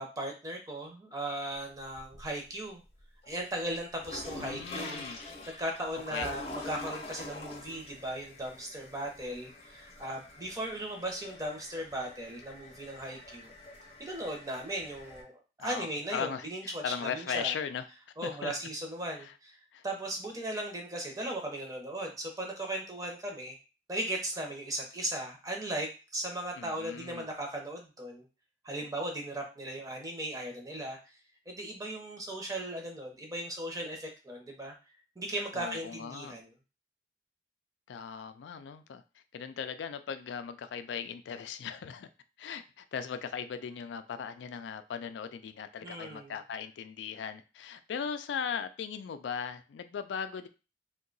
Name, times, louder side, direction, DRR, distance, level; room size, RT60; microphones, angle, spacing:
voice 1, 0.0-2.8 3.3-13.5 14.0-17.5 18.2-19.6 19.8-23.6 23.9-28.2 28.6-31.0 31.5-34.7 35.2-36.5 45.8-46.3, right 1 dB, 20° right, 1 dB, 0.7 m, -37 dB
sound 1, 1.5-2.5 2.9-15.2, left 2 dB, 35° left, 0.7 m, -46 dB
voice 2, 4.4-5.2 6.1-6.3 15.6-17.8 18.2-18.5 19.2-19.3 19.7-19.8 26.6-27.3 35.5-36.4 37.9-39.0 39.3-42.1 42.4-50.5, left 7 dB, 90° left, 10 dB, 0.3 m, -38 dB
2.7 x 2.2 x 3.8 m, 0.32 s
head